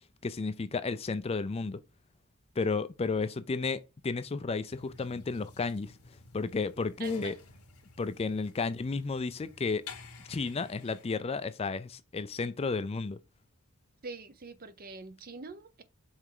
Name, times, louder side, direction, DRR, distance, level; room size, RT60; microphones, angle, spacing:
voice 1, 0.2-1.8 2.6-5.9 6.3-7.4 8.0-9.8 10.3-13.2, left 4 dB, 25° left, 0.4 m, -32 dB
sound 1, 4.7-11.0, left 4 dB, 80° left, 1.5 m, -51 dB
voice 2, 7.0-7.3 14.0-15.8, right 4 dB, 40° right, 0.7 m, -44 dB
5.7 x 3.4 x 4.9 m
head